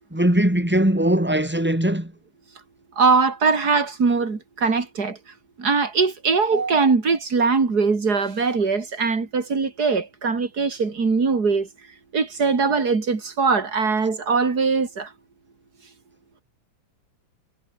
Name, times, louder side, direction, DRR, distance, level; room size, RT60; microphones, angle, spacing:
voice 1, 0.1-2.1, right 1 dB, 5° right, 4.4 m, -20 dB
voice 2, 3.0-5.2 5.6-11.7 12.1-15.1, right 4 dB, 30° right, 3.7 m, -21 dB
omnidirectional pair, 3.5 m